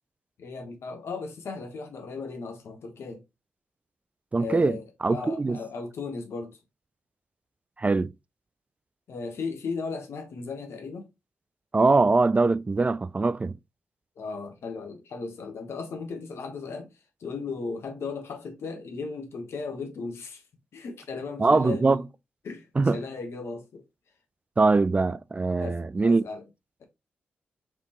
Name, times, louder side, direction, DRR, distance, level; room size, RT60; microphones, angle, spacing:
voice 1, 0.4-3.2 4.4-6.6 9.1-11.1 14.2-20.4 20.7-22.1 22.4-23.8 25.6-26.4, left 4 dB, 70° left, 1.2 m, -36 dB
voice 2, 4.3-5.6 7.8-8.1 11.7-13.6 21.4-22.0 22.8-23.0 24.6-26.2, right 3 dB, 30° right, 0.3 m, -22 dB
4.7 x 3.5 x 2.9 m
supercardioid pair, 40°, 5 cm